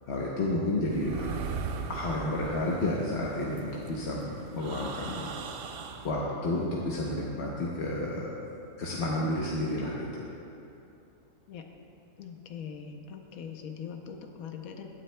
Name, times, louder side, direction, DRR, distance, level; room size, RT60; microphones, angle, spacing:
voice 1, 0.1-1.4 1.9-5.3 5.6-5.7 6.0-8.3 8.8-10.2, left 1 dB, 55° left, -4 dB, 1.1 m, -31 dB
sound 1, 0.9-6.1, right 5 dB, 65° right, 0.6 m, -39 dB
voice 2, 12.2-14.9, left 7 dB, 85° left, 4 dB, 1.1 m, -42 dB
15.5 x 9.5 x 2.2 m, 2.8 s
omnidirectional pair, 1.4 m